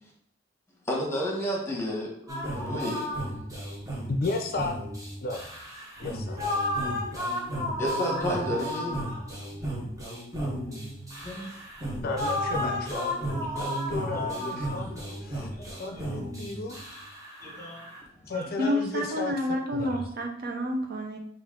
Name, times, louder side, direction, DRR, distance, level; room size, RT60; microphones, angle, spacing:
voice 1, 0.9-2.1 2.6-3.1 7.8-9.2 9.5-9.7 11.2-11.5 13.5-13.8 14.1-14.2 15.1-15.2 15.6-16.2 17.4-17.9 18.2-18.7, equal, 15° left, -3 dB, 1.2 m, -32 dB
sound 1, 2.3-18.0, equal, 20° right, 1.0 m, -33 dB
voice 2, 4.1-4.8 5.2-5.5 6.0-6.5 12.0-13.1 13.9-15.5 15.8-16.8 18.3-19.3 19.7-20.0, left 3 dB, 50° left, 4 dB, 0.5 m, -33 dB
voice 3, 18.6-21.2, left 1 dB, 55° right, 2 dB, 0.7 m, -29 dB
5.4 x 2.5 x 3.7 m, 0.67 s
head